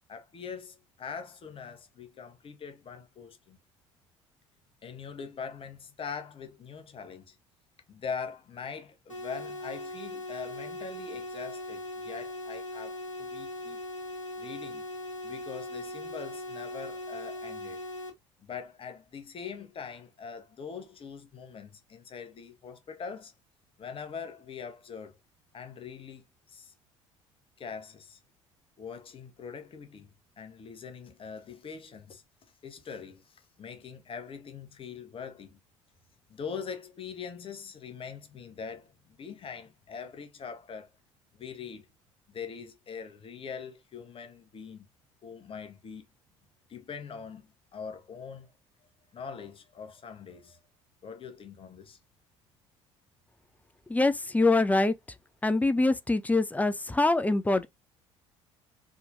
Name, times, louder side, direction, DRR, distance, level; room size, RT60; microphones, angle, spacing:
voice 1, 0.1-3.6 4.8-7.4 7.9-13.8 14.4-14.9 15.2-17.8 18.4-23.3 23.8-25.2 25.5-26.7 27.6-28.2 28.8-32.2 32.6-35.6 36.3-40.9 41.3-41.9 42.3-44.9 45.2-46.1 46.7-48.5 49.1-50.6 51.0-52.0, left 6 dB, 35° left, 1.1 m, -42 dB
sound 1, 9.1-18.1, left 1 dB, 80° left, 1.2 m, -39 dB
voice 2, 53.9-55.0 55.4-57.7, left 2 dB, 10° left, 0.4 m, -24 dB
4.2 x 3.5 x 2.5 m
figure-of-eight pair, 55°, 16 cm